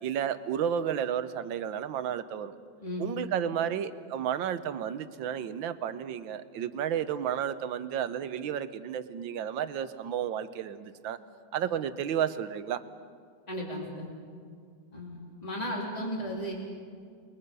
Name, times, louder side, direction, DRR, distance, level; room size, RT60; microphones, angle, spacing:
voice 1, 0.0-2.5 3.0-11.2 11.5-12.8, right 9 dB, 85° right, 12 dB, 1.6 m, -32 dB
voice 2, 2.8-3.2 13.5-14.1 14.9-16.5, equal, 20° left, -2 dB, 3.9 m, -35 dB
29.0 x 22.0 x 5.5 m, 2.2 s
omnidirectional pair, 2.0 m